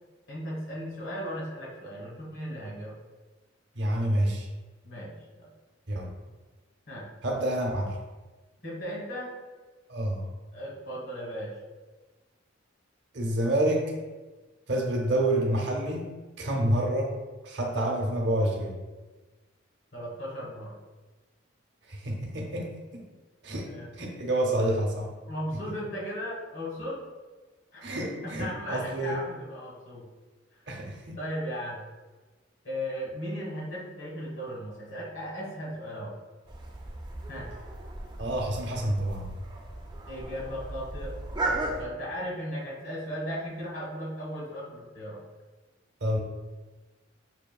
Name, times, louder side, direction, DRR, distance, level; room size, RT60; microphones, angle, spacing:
voice 1, 0.3-3.0 4.8-5.1 5.4-5.5 6.9-7.1 8.6-9.3 10.5-11.6 19.9-20.7 23.6-23.9 25.3-27.0 27.7-27.8 28.2-30.0 30.5-30.6 31.2-31.8 32.6-36.1 37.3-37.5 40.1-45.2, equal, 70° left, -4 dB, 1.3 m, -36 dB
voice 2, 3.7-4.5 5.9-6.1 7.2-8.0 9.9-10.2 13.1-13.9 14.7-17.1 17.4-18.7 21.9-23.0 23.4-23.7 24.0-25.1 25.6-25.7 27.8-29.2 30.7-31.2 38.2-39.3 46.0-46.2, right 1 dB, 65° right, 0 dB, 0.7 m, -28 dB
sound 1, 36.5-41.8, right 2 dB, 25° right, 0.4 m, -36 dB
5.6 x 2.7 x 2.3 m, 1.3 s
head